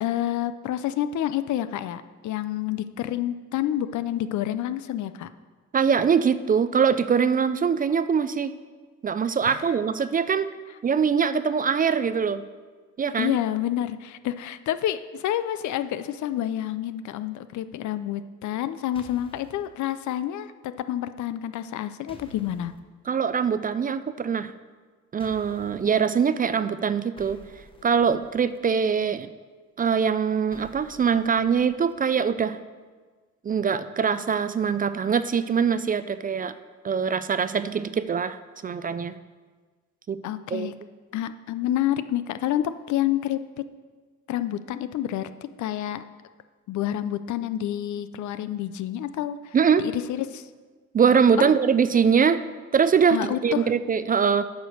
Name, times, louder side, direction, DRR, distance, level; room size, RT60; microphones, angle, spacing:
voice 1, 0.0-5.3 9.4-9.6 13.2-22.7 40.2-40.7 41.1-43.7 44.3-46.0 46.7-50.5 51.4-51.5 53.1-53.7, left 12 dB, 70° left, 12 dB, 0.5 m, -28 dB
voice 2, 5.7-8.5 9.0-10.5 10.8-12.4 13.0-13.4 23.1-24.5 25.1-27.4 27.8-29.3 29.8-32.6 33.4-36.5 36.8-38.4 38.6-39.2 40.1-40.2 40.5-40.7 49.5-49.8 50.9-52.4 52.7-54.4, right 6 dB, 30° right, 13 dB, 0.4 m, -23 dB
sound 1, 19.0-19.7 22.1-22.8 25.2-25.9 27.2-28.6 30.5-31.9, left 1 dB, 15° left, 1.0 m, -50 dB
9.0 x 5.1 x 6.4 m, 1.4 s
cardioid pair, 90°, 30 cm